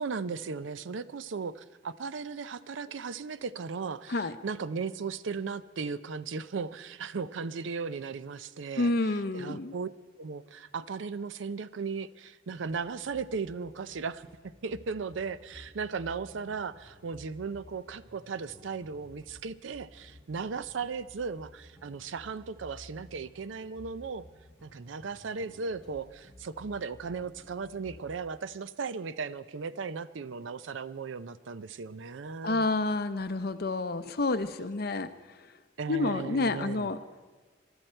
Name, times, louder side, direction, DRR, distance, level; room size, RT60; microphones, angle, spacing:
voice 1, 0.0-9.9 10.2-14.3 14.6-24.2 24.6-32.7 35.8-36.9, right 5 dB, 75° right, 16 dB, 0.5 m, -36 dB
voice 2, 8.8-9.7 32.4-35.1 35.9-37.0, left 2 dB, 50° left, 11 dB, 0.7 m, -29 dB
sound 1, 12.5-28.2, left 1 dB, 5° left, 1.7 m, -55 dB
23.0 x 12.0 x 4.4 m, 1.3 s
head